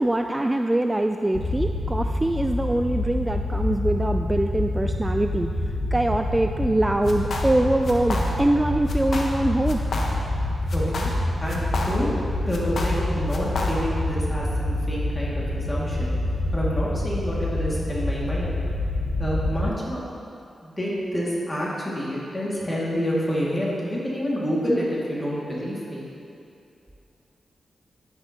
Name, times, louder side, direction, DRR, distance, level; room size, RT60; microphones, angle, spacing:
voice 1, 0.0-5.5 5.9-9.8, right 1 dB, 15° right, 5 dB, 0.3 m, -23 dB
sound 1, 1.3-19.7, left 1 dB, 45° left, 1.3 m, -27 dB
sound 2, 7.1-7.6 7.8-8.6 8.9-9.4 9.7-10.4 10.7-12.2 12.5-14.0, left 2 dB, 65° left, 1.1 m, -30 dB
voice 2, 10.7-11.1 11.4-12.1 12.5-16.1 16.5-18.5 19.2-20.0 20.6-26.0, equal, 20° left, -6 dB, 2.1 m, -28 dB
10.5 x 10.0 x 2.9 m, 2.6 s
cardioid pair, 85°, 0 cm